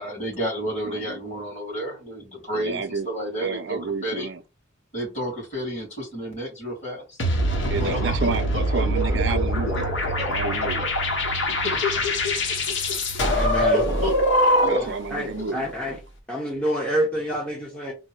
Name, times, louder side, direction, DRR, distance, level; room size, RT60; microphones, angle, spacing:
voice 1, 0.0-4.3 4.9-7.2 7.7-8.6 8.9-9.0 9.3-9.4 9.7-9.8 10.2-10.3 10.8-10.9 11.3-13.0 13.6-14.2 14.6-14.9 15.4-15.5, equal, 35° left, 2.3 m, -31 dB
voice 2, 0.8-1.2 2.5-3.1 3.4-4.4 7.6-9.9 10.3-10.8 14.7-15.7, right 4 dB, 65° right, 0.5 m, -30 dB
sound 1, 7.2-15.0, equal, 70° left, 1.0 m, -23 dB
voice 3, 13.4-13.8 14.8-16.0 16.3-17.9, equal, 5° left, 0.7 m, -28 dB
3.7 x 2.1 x 4.4 m
head